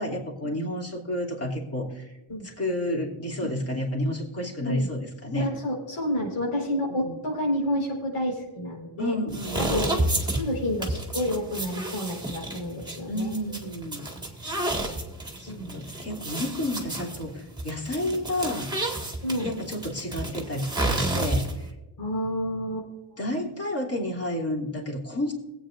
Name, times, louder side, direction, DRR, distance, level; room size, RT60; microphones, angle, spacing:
voice 1, 0.0-2.1 2.4-5.5 7.0-7.1 9.0-9.9 13.1-14.1 15.4-18.7 19.4-21.7 23.2-25.3, left 1 dB, 30° left, -2 dB, 3.1 m, -30 dB
voice 2, 5.3-9.1 9.6-13.3 15.5-15.9 19.2-19.5 22.0-23.2, equal, 80° left, -1 dB, 4.6 m, -30 dB
sound 1, 9.3-21.7, right 1 dB, 10° right, 1.9 m, -31 dB
21.5 x 8.6 x 2.6 m, 1.1 s
cardioid pair, 110°, 49 cm